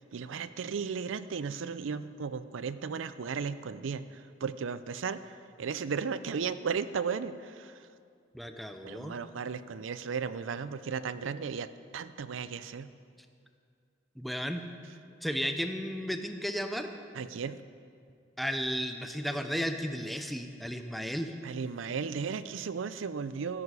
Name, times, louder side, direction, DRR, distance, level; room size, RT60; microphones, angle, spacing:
voice 1, 0.1-7.7 8.8-12.9 17.2-17.6 21.4-23.6, right 6 dB, 85° right, 14 dB, 0.5 m, -35 dB
voice 2, 8.3-9.1 14.2-14.6 15.2-16.9 18.4-21.3, equal, ahead, 6 dB, 0.6 m, -34 dB
13.0 x 9.9 x 4.8 m, 2.3 s
head